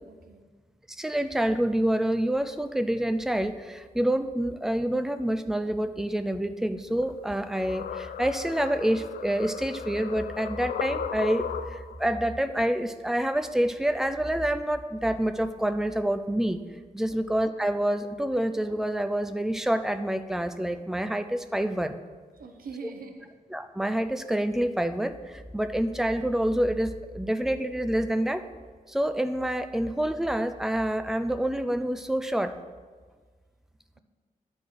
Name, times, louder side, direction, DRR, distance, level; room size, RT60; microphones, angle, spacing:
voice 1, 0.0-0.5 17.1-17.2 22.3-23.3 33.9-34.0, right 4 dB, 75° right, 5 dB, 0.8 m, -43 dB
voice 2, 0.9-16.7 16.9-22.0 23.5-28.4 28.9-32.6, right 1 dB, 5° right, 9 dB, 0.3 m, -27 dB
sound 1, 7.0-12.0, left 8 dB, 90° left, 0.4 m, -36 dB
11.5 x 4.4 x 4.8 m, 1.5 s
wide cardioid pair, 160°, 15 cm